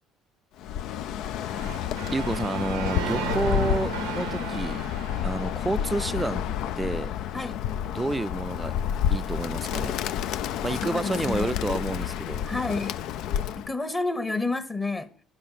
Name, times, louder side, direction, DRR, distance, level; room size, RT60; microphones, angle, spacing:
Bird, 0.6-13.7, left 10 dB, 65° left, 0.4 m, -30 dB
sound 1, 1.5-6.5, right 10 dB, 75° right, 0.6 m, -36 dB
voice 1, 2.1-4.8 5.2-6.4 6.8-7.1 7.9-8.7 9.1-10.0 10.6-12.4, right 2 dB, 15° right, 0.4 m, -29 dB
voice 2, 10.8-11.6 12.4-13.0 13.6-15.1, left 3 dB, 25° left, 1.2 m, -30 dB
12.0 x 5.5 x 6.5 m
hypercardioid pair, 55°, 0 cm